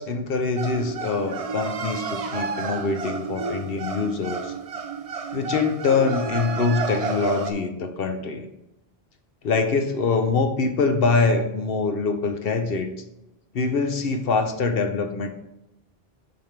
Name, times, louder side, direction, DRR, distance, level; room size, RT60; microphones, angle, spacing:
voice 1, 0.0-4.5 5.3-8.5 9.4-12.9 13.5-15.3, left 4 dB, 65° left, 6 dB, 0.9 m, -24 dB
sound 1, 0.6-7.5, right 5 dB, 50° right, 0.4 m, -31 dB
6.6 x 3.4 x 5.8 m, 0.88 s
omnidirectional pair, 1.1 m